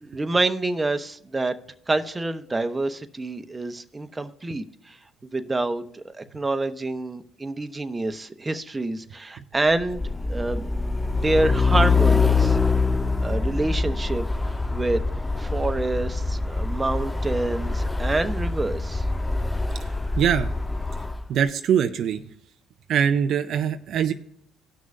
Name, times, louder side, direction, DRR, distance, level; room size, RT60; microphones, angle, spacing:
voice 1, 0.0-1.5 1.9-5.0 5.2-10.7 11.1-12.6 13.2-15.0 15.4-19.1, right 2 dB, 20° right, 8 dB, 0.9 m, -27 dB
Truck, 9.8-21.2, left 4 dB, 15° left, 0.5 m, -24 dB
voice 2, 20.2-20.5 21.3-22.2 22.9-24.1, right 8 dB, 65° right, 8 dB, 0.5 m, -22 dB
18.0 x 6.3 x 2.6 m, 0.69 s
supercardioid pair, 65°, 0 cm